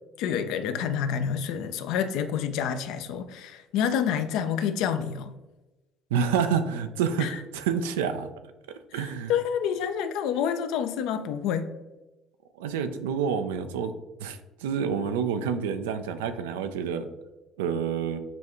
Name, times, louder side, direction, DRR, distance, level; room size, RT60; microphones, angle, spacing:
voice 1, 0.2-5.3 7.2-7.4 9.3-11.7, left 8 dB, 75° left, 10 dB, 0.4 m, -28 dB
voice 2, 6.1-8.3 8.7-9.3 12.6-13.9 14.2-17.1 17.6-18.2, right 7 dB, 90° right, 9 dB, 0.3 m, -28 dB
6.8 x 2.3 x 3.0 m, 1.1 s
supercardioid pair, 70°, 0 cm